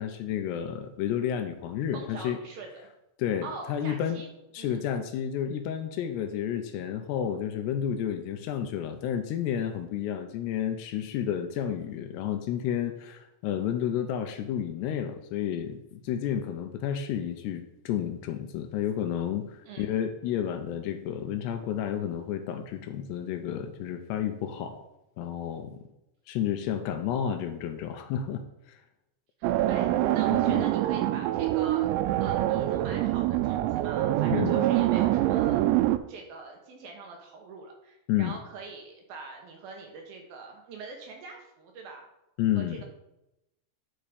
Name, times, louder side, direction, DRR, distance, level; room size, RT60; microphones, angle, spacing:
voice 1, 0.0-2.4 3.2-4.2 4.5-24.8 25.2-25.8 26.3-28.4 28.7-28.8 30.3-30.6 34.3-34.7 38.1-38.4 42.4-42.8, left 9 dB, 80° left, 8 dB, 2.6 m, -31 dB
voice 2, 1.9-2.9 3.4-4.3 4.6-4.8 19.7-19.9 29.4-31.9 32.2-35.7 36.1-42.1 42.6-42.8, right 4 dB, 70° right, 2 dB, 2.5 m, -43 dB
sound 1, 29.4-36.0, right 14 dB, 90° right, 2.9 m, -25 dB
11.5 x 4.9 x 5.0 m, 0.90 s
omnidirectional pair, 5.1 m